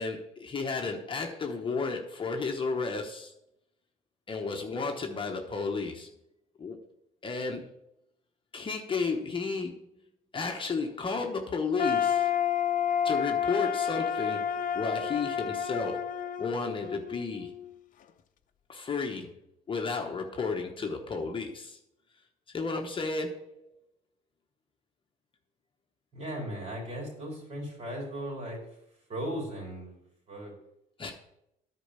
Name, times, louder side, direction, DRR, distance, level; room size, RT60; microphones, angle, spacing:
voice 1, 0.0-3.3 4.3-6.1 6.6-6.8 7.2-7.7 8.5-9.7 10.3-12.4 13.0-17.5 18.7-19.3 19.7-21.8 22.5-23.5 31.0-31.1, left 4 dB, 30° left, 3 dB, 1.0 m, -33 dB
sound 1, 11.8-17.7, left 8 dB, 50° left, 0.7 m, -30 dB
voice 2, 26.1-28.6 29.1-30.5, equal, 40° right, -1 dB, 4.4 m, -37 dB
10.0 x 4.5 x 6.7 m, 0.79 s
cardioid pair, 110°, 17 cm